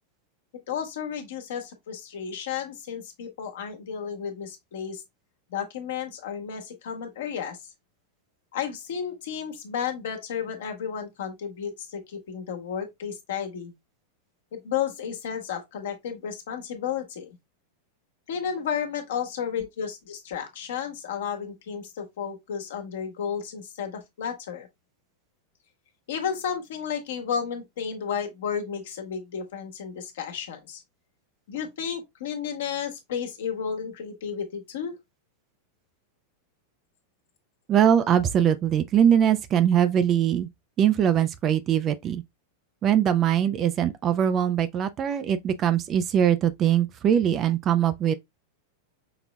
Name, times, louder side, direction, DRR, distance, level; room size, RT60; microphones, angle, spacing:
voice 1, 0.7-5.0 5.5-7.6 8.5-13.7 14.5-17.3 18.3-24.7 26.1-30.8 31.5-34.9, left 7 dB, 60° left, 1.3 m, -32 dB
voice 2, 37.7-40.5 40.8-42.2 42.8-48.1, right 9 dB, 30° right, 0.5 m, -22 dB
5.9 x 3.9 x 2.2 m
figure-of-eight pair, 90°, 0 cm